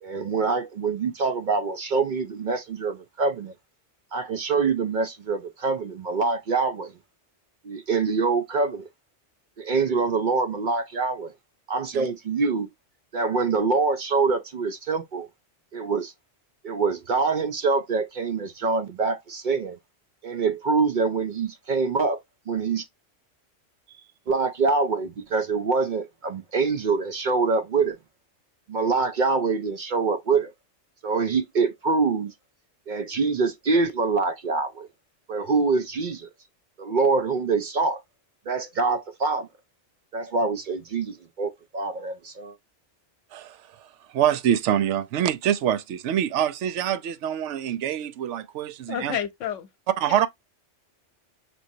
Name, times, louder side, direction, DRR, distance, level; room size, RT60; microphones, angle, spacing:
voice 1, 0.0-3.5 4.1-6.9 7.6-8.9 9.6-11.3 11.7-12.7 13.1-15.3 15.7-16.1 16.6-19.8 20.2-22.2 22.5-22.9 24.3-28.0 28.7-30.5 31.0-32.3 32.9-34.9 35.3-36.3 36.8-38.0 38.5-39.5 40.1-42.6, right 4 dB, 55° right, 0.5 m, -25 dB
voice 2, 43.3-43.9 44.1-49.2 50.0-50.3, right 10 dB, 75° right, 0.9 m, -25 dB
voice 3, 48.9-49.7 50.1-50.2, left 9 dB, 85° left, 1.1 m, -30 dB
6.0 x 2.6 x 2.6 m
omnidirectional pair, 1.2 m